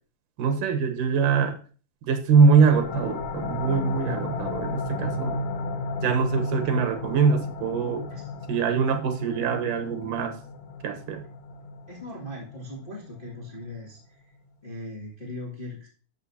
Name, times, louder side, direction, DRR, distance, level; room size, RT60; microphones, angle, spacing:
voice 1, 0.4-1.6 2.1-5.4 6.0-8.1 8.5-10.3 10.8-11.2, right 5 dB, 80° right, 7 dB, 2.7 m, -23 dB
sound 1, 2.3-13.7, left 3 dB, 80° left, 1.2 m, -34 dB
voice 2, 11.9-14.3 14.6-15.9, left 1 dB, 20° left, -5 dB, 2.0 m, -39 dB
13.0 x 5.9 x 2.8 m, 0.40 s
omnidirectional pair, 3.7 m